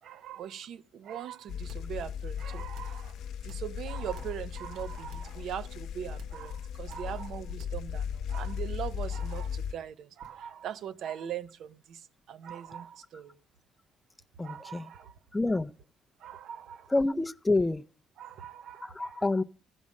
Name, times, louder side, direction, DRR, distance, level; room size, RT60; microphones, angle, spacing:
voice 1, 0.0-13.4 14.4-15.1 16.2-16.9 18.2-19.2, right 9 dB, 60° right, 0.7 m, -41 dB
sound 1, 1.5-9.7, left 8 dB, 70° left, 0.8 m, -37 dB
sound 2, 1.6-2.0 2.6-3.0 3.5-4.5 5.0-5.4 6.1-6.5 6.9-7.2 7.5-7.9 9.0-9.4 10.2-10.5, right 3 dB, 75° right, 1.7 m, -50 dB
voice 2, 14.4-14.9 15.3-15.7 16.9-17.8 18.8-19.4, left 2 dB, 10° left, 0.5 m, -28 dB
15.0 x 5.3 x 7.3 m
cardioid pair, 135°, 0 cm